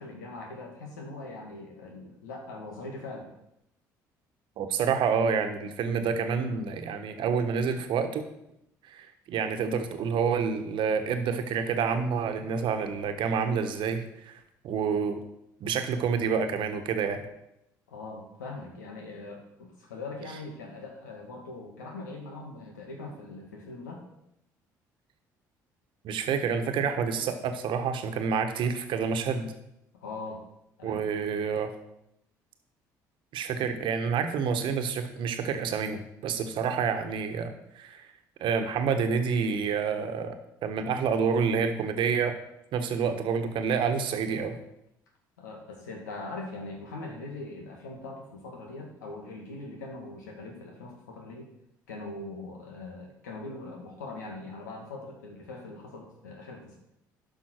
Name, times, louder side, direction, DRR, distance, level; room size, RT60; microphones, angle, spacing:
voice 1, 0.0-3.3 12.4-12.5 17.9-24.0 29.9-30.4 30.8-31.0 45.4-51.5 51.9-56.8, left 2 dB, 85° left, 1 dB, 1.8 m, -41 dB
voice 2, 4.6-8.2 8.9-14.4 14.6-15.2 15.6-17.3 26.0-29.5 30.8-31.7 33.3-38.1 38.4-42.4 42.7-44.6, right 6 dB, 60° right, 7 dB, 1.2 m, -28 dB
12.0 x 5.6 x 4.5 m, 0.82 s
hypercardioid pair, 55°, 9 cm